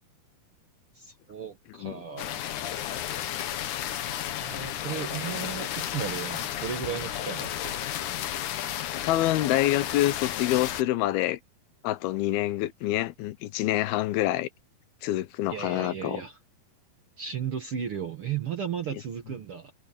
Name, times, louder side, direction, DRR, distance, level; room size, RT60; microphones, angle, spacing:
voice 1, 0.9-2.7 4.4-7.8 15.5-16.4 17.2-19.7, right 8 dB, 55° right, 1.5 m, -35 dB
sound 1, 2.2-10.8, left 11 dB, 65° left, 2.3 m, -33 dB
voice 2, 9.0-11.4 11.8-14.5 15.0-16.2, left 15 dB, 85° left, 2.8 m, -26 dB
omnidirectional pair, 4.3 m